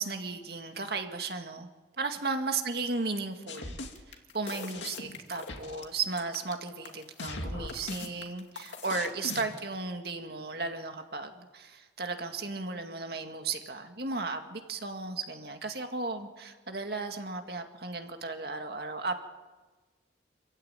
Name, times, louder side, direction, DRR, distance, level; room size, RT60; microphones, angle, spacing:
voice 1, 0.0-1.7 2.0-3.8 4.1-19.2, right 4 dB, 60° right, 5 dB, 2.1 m, -35 dB
sound 1, 3.5-9.6, left 2 dB, 85° left, 2.4 m, -39 dB
27.0 x 15.5 x 9.2 m, 1.3 s
head